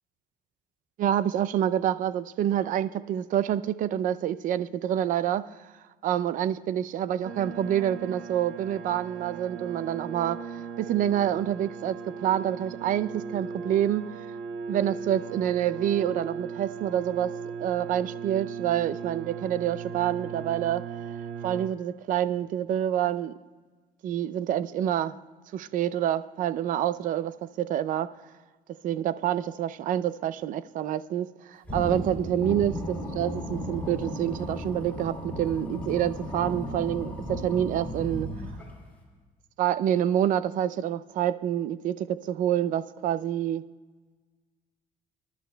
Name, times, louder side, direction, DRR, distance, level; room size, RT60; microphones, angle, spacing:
voice 1, 1.0-5.4 6.0-10.5 10.8-14.1 14.7-17.3 17.6-20.8 21.4-23.3 24.0-25.1 25.5-28.1 28.8-38.3 39.6-43.6, right 11 dB, 55° right, 15 dB, 0.5 m, -27 dB
sound 1, 7.2-21.7, right 6 dB, 80° right, 1.5 m, -38 dB
sound 2, 31.6-38.9, equal, 10° left, 3.0 m, -35 dB
25.5 x 12.0 x 2.3 m, 1.3 s
cardioid pair, 130°, 16 cm